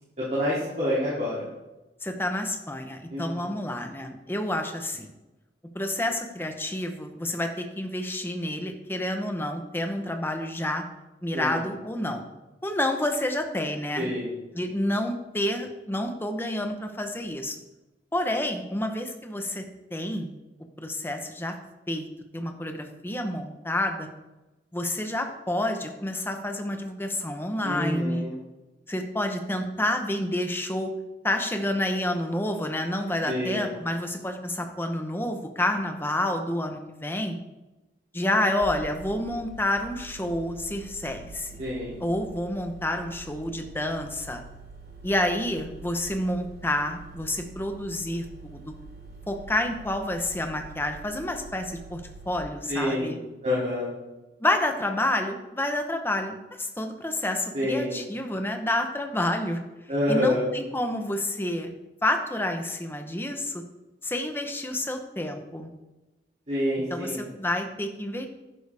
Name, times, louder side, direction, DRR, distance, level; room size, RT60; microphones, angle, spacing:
voice 1, 0.2-1.5 3.1-3.5 11.3-11.6 14.0-14.3 27.6-28.3 33.3-33.6 41.6-42.0 52.7-53.2 53.4-53.9 57.5-58.0 59.9-60.5 66.5-67.2, left 1 dB, 40° right, -8 dB, 2.9 m, -27 dB
voice 2, 2.0-5.1 5.7-10.8 11.2-12.2 12.6-14.1 14.5-17.5 18.1-19.6 19.9-20.3 20.8-21.5 21.9-22.1 22.3-24.1 24.7-28.3 28.9-30.9 31.2-37.4 38.1-41.6 42.0-44.4 45.0-48.7 49.3-53.2 54.4-59.6 60.1-61.7 62.0-63.6 64.0-65.7 66.9-68.3, left 1 dB, 15° left, 5 dB, 1.0 m, -29 dB
sound 1, 38.6-52.4, right 3 dB, 60° right, 2.5 m, -45 dB
11.0 x 10.0 x 3.5 m, 1.0 s
head